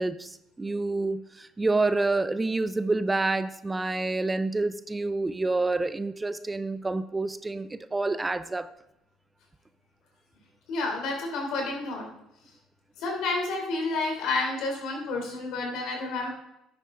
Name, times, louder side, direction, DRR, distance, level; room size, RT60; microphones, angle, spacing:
voice 1, 0.0-8.7, right 3 dB, 20° right, 13 dB, 0.5 m, -28 dB
voice 2, 10.7-12.0 13.0-16.3, left 3 dB, 65° left, 1 dB, 3.4 m, -30 dB
10.5 x 8.8 x 3.9 m, 0.84 s
hypercardioid pair, 70°, 0 cm